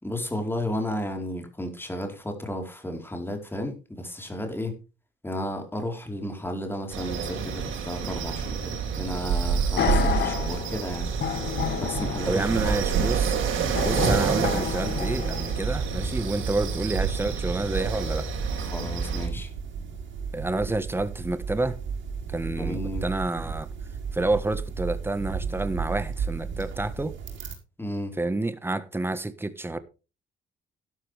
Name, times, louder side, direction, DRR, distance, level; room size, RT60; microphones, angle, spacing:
voice 1, 0.0-4.8 5.2-11.1 11.7-12.8 18.6-19.5 22.6-23.1 27.8-28.2, left 1 dB, 10° left, 4.2 m, -33 dB
sound 1, 6.9-19.3, right 6 dB, 85° right, 4.5 m, -28 dB
sound 2, 9.8-17.9 18.4-18.5, left 8 dB, 60° left, 1.6 m, -32 dB
sound 3, 11.6-27.5, right 6 dB, 70° right, 5.3 m, -34 dB
voice 2, 12.3-13.4 13.8-18.3 20.3-21.8 22.3-23.7 24.1-27.1 28.2-29.8, right 2 dB, 10° right, 1.4 m, -29 dB
12.0 x 12.0 x 3.5 m
cardioid pair, 90°, 20 cm